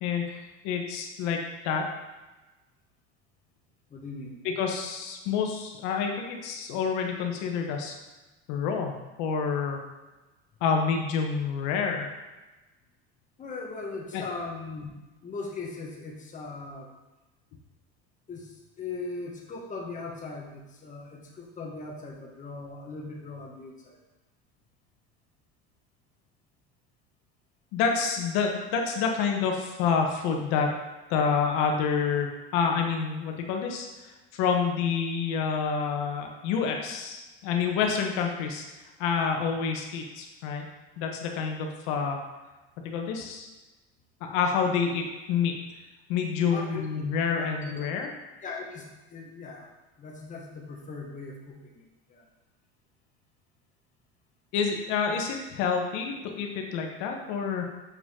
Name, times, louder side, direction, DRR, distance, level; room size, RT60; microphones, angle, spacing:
voice 1, 0.0-1.4 1.6-1.9 4.4-7.9 8.5-9.8 10.6-12.1 14.1-14.2 27.7-30.7 31.1-32.3 32.5-38.6 39.0-40.6 41.0-42.2 42.8-43.5 44.2-45.5 46.1-48.1 54.5-57.6, left 6 dB, 70° left, 2 dB, 1.2 m, -28 dB
voice 2, 3.9-4.4 13.4-14.9 15.2-16.9 18.3-24.0 46.4-47.9 48.4-49.7 50.0-52.3, left 3 dB, 25° left, -1 dB, 1.5 m, -39 dB
6.7 x 5.0 x 3.7 m, 1.1 s
supercardioid pair, 120°, 30 cm